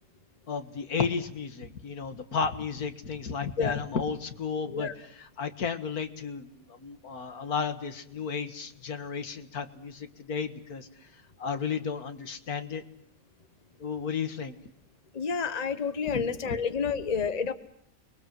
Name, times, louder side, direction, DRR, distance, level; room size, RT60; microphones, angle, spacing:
voice 1, 0.5-4.9 5.4-10.9 11.4-12.8 13.8-14.5 16.1-16.6 17.0-17.1, left 6 dB, 85° left, 9 dB, 2.2 m, -33 dB
voice 2, 15.1-17.5, left 6 dB, 30° left, 11 dB, 1.3 m, -29 dB
30.0 x 22.5 x 7.8 m, 0.70 s
omnidirectional pair, 1.5 m